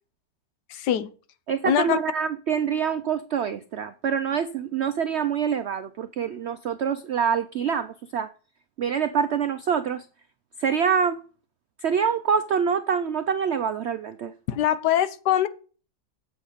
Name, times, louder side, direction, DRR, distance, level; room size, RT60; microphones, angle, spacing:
voice 1, 0.7-1.1 1.6-2.0 14.5-15.5, left 11 dB, 80° left, 1.4 m, -23 dB
voice 2, 1.5-8.3 8.8-10.1 10.6-11.2 11.8-14.3, right 7 dB, 75° right, 0.6 m, -25 dB
8.1 x 8.0 x 5.0 m
omnidirectional pair, 1.8 m